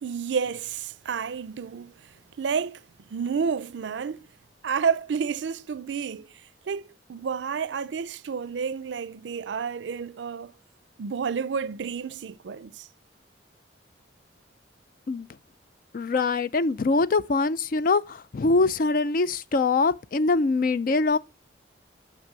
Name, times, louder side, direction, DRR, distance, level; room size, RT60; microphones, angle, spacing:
voice 1, 0.0-2.8 3.1-4.3 4.6-6.3 6.7-10.5 11.0-12.9, right 6 dB, 75° right, 0.4 m, -30 dB
voice 2, 15.9-21.2, left 3 dB, 50° left, 0.4 m, -23 dB
6.0 x 5.9 x 6.7 m
head